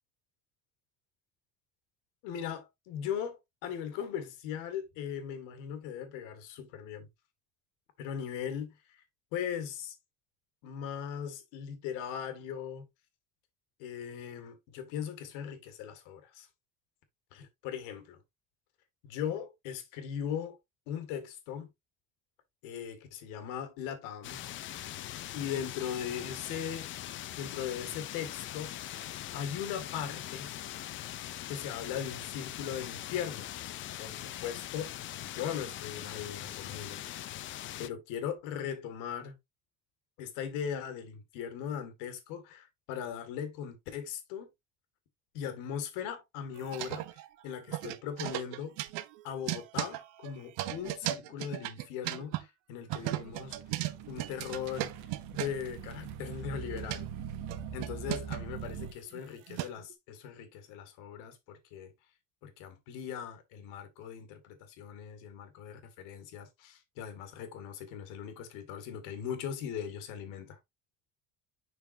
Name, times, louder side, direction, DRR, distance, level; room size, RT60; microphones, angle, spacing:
voice 1, 2.2-7.1 8.0-9.0 9.3-10.0 10.6-12.9 13.8-16.5 17.3-18.2 19.0-20.6 20.9-21.7 22.6-24.4 25.3-26.9 27.4-28.8 29.3-30.5 31.5-33.5 34.0-34.9 35.2-37.0 37.8-39.4 40.2-44.5 45.3-47.2 47.4-48.8 49.2-53.6 54.1-54.9 55.3-57.1 57.7-61.9 62.4-70.6, left 8 dB, 85° left, 2.1 m, -39 dB
sound 1, 24.2-37.9, left 13 dB, 40° left, 0.6 m, -41 dB
sound 2, 46.6-47.4 47.7-52.4 52.9-55.7 56.6-57.0 57.5-59.9, right 15 dB, 85° right, 0.9 m, -36 dB
sound 3, 52.9-58.9, right 8 dB, 65° right, 1.3 m, -43 dB
7.1 x 5.9 x 2.6 m
cardioid pair, 155°, 31 cm